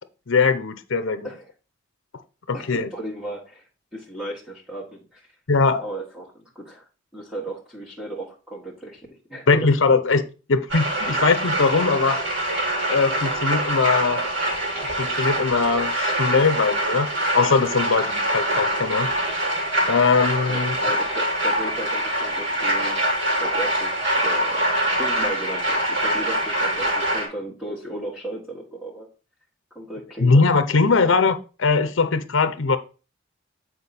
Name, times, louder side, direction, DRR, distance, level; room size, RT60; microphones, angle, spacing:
voice 1, 0.3-1.3 2.5-2.9 5.5-5.8 9.5-12.2 12.9-14.2 15.0-19.1 19.9-20.7 30.2-32.8, left 4 dB, 65° left, 0.6 m, -20 dB
voice 2, 2.5-5.3 5.8-6.8 7.1-9.8 20.5-23.1 23.4-24.6 24.9-29.1 29.7-30.5 31.0-31.1, right 1 dB, 5° right, 1.6 m, -35 dB
sound 1, 10.7-27.3, right 1 dB, 55° right, 3.4 m, -24 dB
8.6 x 4.5 x 4.2 m
head